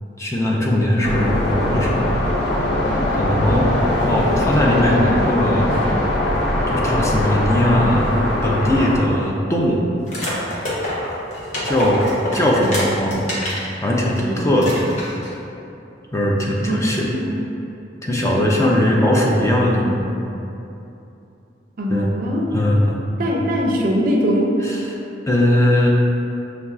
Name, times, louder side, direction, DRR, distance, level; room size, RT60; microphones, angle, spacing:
voice 1, 0.2-2.3 3.1-3.7 4.1-5.8 6.7-8.1 8.4-9.9 11.6-12.0 12.3-13.3 13.8-14.7 16.1-17.1 18.0-20.0 21.9-22.1 22.5-23.0 24.6-25.0 25.3-25.9, left 1 dB, 15° left, -2 dB, 0.4 m, -19 dB
sound 1, 1.0-9.0, left 1 dB, 90° left, 0.7 m, -21 dB
sound 2, 10.1-13.7 14.1-14.2 14.6-15.3, left 1 dB, 40° left, 0.9 m, -26 dB
voice 2, 16.7-17.4 21.8-22.4 23.2-24.5, equal, 50° right, -1 dB, 0.5 m, -21 dB
6.6 x 2.3 x 2.4 m, 2.8 s
head